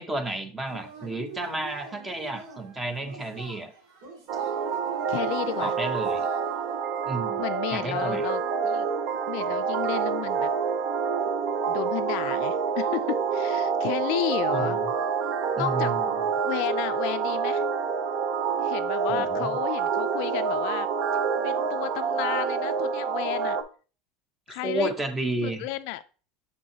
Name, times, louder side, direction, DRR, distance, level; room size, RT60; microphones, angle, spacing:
voice 1, 0.0-3.7 5.6-6.3 7.1-7.4 7.7-8.3 14.5-14.9 15.6-16.1 19.1-19.5 24.5-25.7, right 2 dB, 10° right, 9 dB, 0.8 m, -32 dB
Yell / Cheering, 0.7-6.8, right 4 dB, 75° right, 2.2 m, -45 dB
sound 1, 4.3-23.6, right 6 dB, 55° right, 0.7 m, -27 dB
voice 2, 5.1-5.7 7.4-8.9 9.3-10.5 11.7-14.8 15.6-15.9 16.4-17.6 18.6-20.9 21.4-23.6 24.5-24.9 25.4-26.0, left 16 dB, 60° left, 13 dB, 0.3 m, -32 dB
6.5 x 5.4 x 2.8 m, 0.36 s
supercardioid pair, 150°, 0 cm